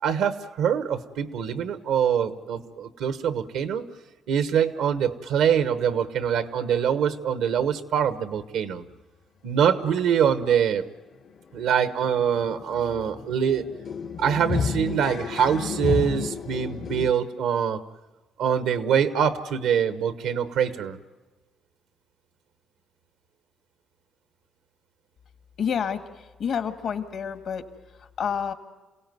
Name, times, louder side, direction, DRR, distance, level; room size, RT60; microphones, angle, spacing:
voice 1, 0.0-3.9 4.3-8.8 9.4-10.9 11.5-13.7 14.2-17.8 18.4-21.0, right 8 dB, 85° right, 12 dB, 1.1 m, -24 dB
sound 1, 10.7-10.8 11.1-17.1, left 6 dB, 55° left, 0.8 m, -32 dB
voice 2, 25.6-26.0 26.4-27.6 28.2-28.5, left 7 dB, 70° left, 8 dB, 1.8 m, -28 dB
27.5 x 17.0 x 9.4 m, 1.2 s
cardioid pair, 80°, 0 cm